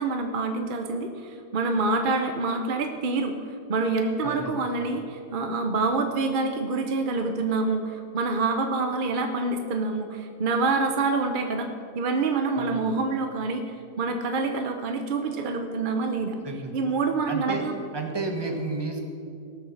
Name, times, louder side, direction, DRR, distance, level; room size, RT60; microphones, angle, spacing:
voice 1, 0.0-3.4 3.7-16.4 16.7-17.8, right 3 dB, 45° right, 5 dB, 0.7 m, -26 dB
voice 2, 4.2-4.6 12.5-12.9 16.4-16.7 17.3-17.7 17.9-19.0, right 3 dB, 15° right, 3 dB, 1.2 m, -31 dB
18.0 x 6.5 x 6.5 m, 2.5 s
omnidirectional pair, 1.7 m